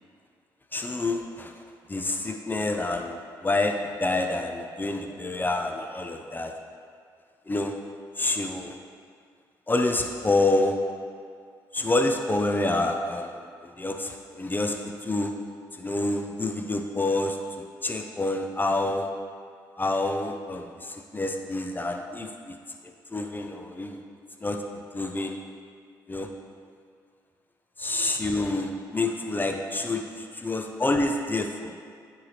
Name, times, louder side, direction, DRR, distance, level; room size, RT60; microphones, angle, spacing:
voice 1, 0.7-1.6 1.9-6.5 7.5-7.7 8.2-8.8 9.7-10.8 11.7-15.3 15.8-19.1 19.8-22.6 23.1-24.0 24.4-24.6 24.9-25.4 26.1-26.3 27.8-31.7, left 2 dB, 20° left, 4 dB, 0.9 m, -28 dB
9.4 x 4.7 x 3.4 m, 2.2 s
hypercardioid pair, 50°, 9 cm